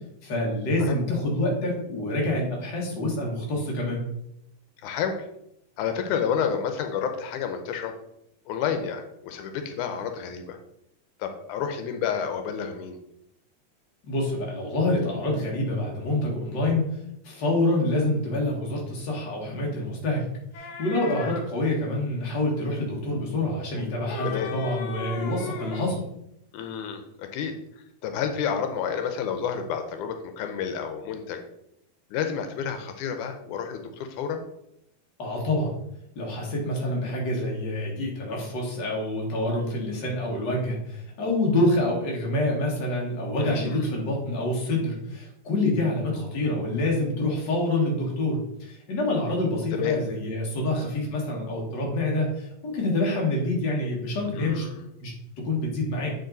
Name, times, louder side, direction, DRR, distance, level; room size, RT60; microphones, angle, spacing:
voice 1, 0.2-4.0 14.1-20.3 20.6-26.1 35.2-35.8 36.2-54.7 55.0-56.1, left 1 dB, 40° left, -2 dB, 2.0 m, -27 dB
voice 2, 4.8-5.2 5.8-8.0 8.5-10.6 11.2-13.0 24.2-24.5 26.5-27.6 28.0-31.4 32.1-34.4 43.4-43.8 49.7-50.0 54.3-54.8, left 7 dB, 85° left, 7 dB, 2.2 m, -30 dB
sound 1, 20.5-21.5 23.8-25.9, left 5 dB, 65° left, 1.9 m, -37 dB
7.8 x 4.7 x 3.9 m, 0.79 s
omnidirectional pair, 3.5 m